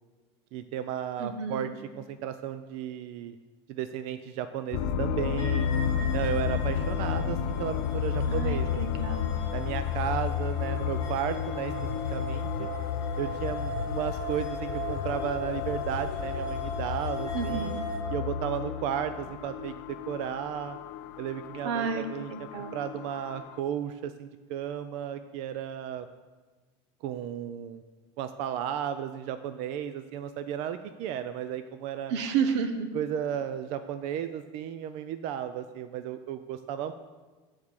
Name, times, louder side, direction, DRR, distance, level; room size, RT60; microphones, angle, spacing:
voice 1, 0.5-3.4 3.7-5.7 6.1-9.1 9.5-11.7 12.1-12.7 13.2-17.8 18.1-20.8 21.2-26.1 27.0-27.8 28.2-32.1 32.9-36.9, right 9 dB, 50° right, 10 dB, 0.4 m, -34 dB
voice 2, 1.2-1.8 8.3-9.4 17.3-17.9 21.6-22.0 22.3-22.8 32.1-32.9, right 6 dB, 85° right, 8 dB, 1.0 m, -31 dB
sound 1, 4.7-23.6, left 8 dB, 70° left, 0.5 m, -32 dB
sound 2, 5.4-18.0, equal, 25° right, 3.1 m, -39 dB
8.7 x 4.7 x 7.2 m, 1.3 s
cardioid pair, 165°, 14 cm